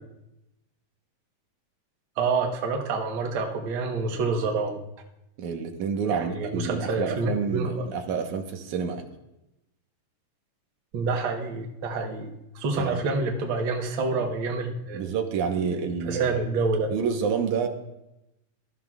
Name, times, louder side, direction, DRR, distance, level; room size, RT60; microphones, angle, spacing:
voice 1, 2.2-4.8 6.1-7.9 10.9-15.0 15.6-16.9, right 3 dB, 55° right, 2 dB, 1.7 m, -28 dB
voice 2, 5.4-9.0 12.7-13.0 14.9-16.4 16.9-17.7, right 6 dB, 90° right, 4 dB, 2.5 m, -28 dB
17.5 x 13.0 x 2.4 m, 0.90 s
omnidirectional pair, 3.4 m